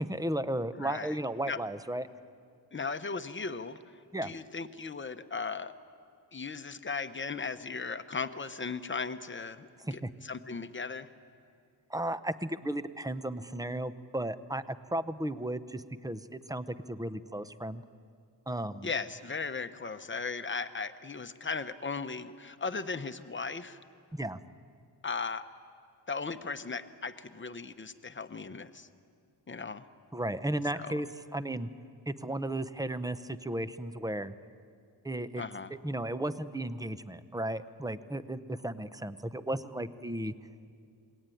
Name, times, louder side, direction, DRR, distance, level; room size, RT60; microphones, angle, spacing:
voice 1, 0.0-2.1 4.1-4.3 9.9-10.1 11.9-17.8 18.5-18.9 24.1-24.4 30.1-31.1 31.3-31.7 32.1-34.3 35.0-35.4 35.8-40.3, right 1 dB, 10° right, 12 dB, 0.6 m, -34 dB
voice 2, 0.7-1.2 1.5-1.6 2.7-3.8 4.2-5.7 6.3-11.1 18.8-23.8 25.0-25.5 26.1-28.9 29.5-29.8 30.7-31.0 35.4-35.7, left 4 dB, 25° left, 10 dB, 0.9 m, -37 dB
27.5 x 21.5 x 9.2 m, 2.3 s
wide cardioid pair, 160°, 43 cm